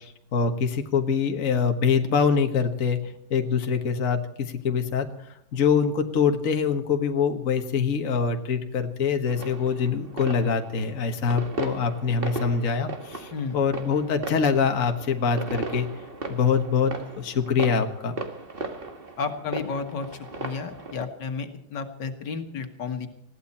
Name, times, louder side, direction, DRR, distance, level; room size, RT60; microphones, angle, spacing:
voice 1, 0.0-15.9 16.3-18.2, left 6 dB, 50° left, 5 dB, 1.7 m, -24 dB
sound 1, 9.3-21.1, right 2 dB, 35° right, 1.9 m, -37 dB
voice 2, 19.2-20.1 20.4-23.1, left 5 dB, 80° left, 6 dB, 2.2 m, -32 dB
20.5 x 16.0 x 4.3 m, 0.75 s
omnidirectional pair, 1.8 m